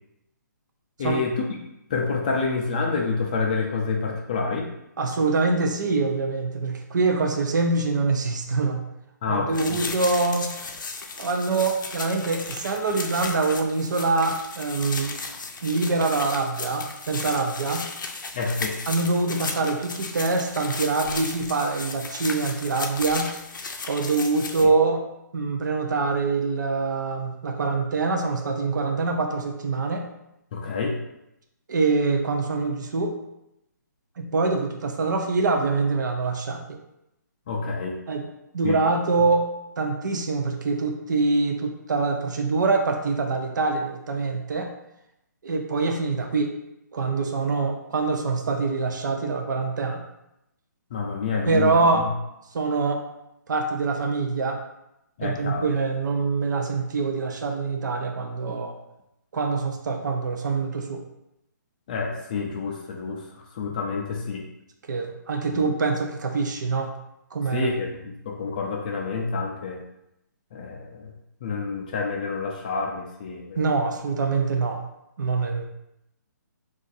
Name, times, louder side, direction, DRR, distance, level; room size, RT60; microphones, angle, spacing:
voice 1, 1.0-1.6 1.9-4.7 9.2-9.8 18.3-18.7 30.5-30.9 37.5-37.9 38.6-38.8 50.9-52.1 55.2-55.7 61.9-63.2 63.5-64.4 65.5-65.7 67.5-69.8 70.5-71.1 71.4-73.6, left 4 dB, 25° left, 0 dB, 0.3 m, -28 dB
voice 2, 5.0-8.8 9.3-10.6 11.2-15.2 15.6-17.9 18.9-23.4 23.9-25.0 25.3-30.1 31.7-33.2 34.2-36.8 38.1-38.3 38.5-39.5 39.8-44.7 45.4-46.6 46.9-50.0 51.4-52.1 52.5-53.0 53.5-54.6 55.2-58.8 59.3-61.0 64.9-66.9 67.3-67.7 73.6-74.9 75.2-75.6, right 3 dB, 70° right, 4 dB, 0.5 m, -24 dB
sound 1, 9.5-24.7, left 4 dB, 85° left, 0.5 m, -35 dB
2.5 x 2.5 x 3.9 m, 0.85 s
hypercardioid pair, 165°, 10 cm